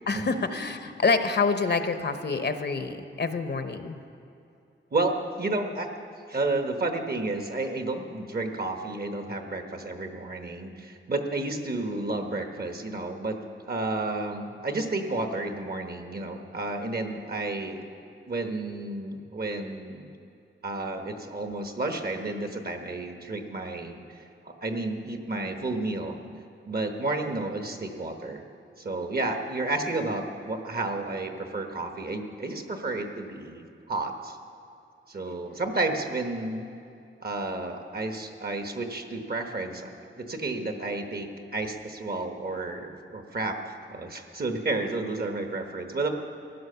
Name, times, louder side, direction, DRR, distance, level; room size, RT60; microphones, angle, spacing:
voice 1, 0.1-4.0, left 4 dB, 55° left, 8 dB, 0.8 m, -27 dB
voice 2, 4.9-5.9 6.3-13.4 13.7-17.8 18.3-20.1 20.6-24.0 24.4-26.2 26.7-28.4 28.8-34.4 35.1-36.7 37.2-46.1, right 2 dB, 45° right, 4 dB, 1.3 m, -31 dB
15.5 x 11.0 x 6.8 m, 2.6 s
wide cardioid pair, 110°, 21 cm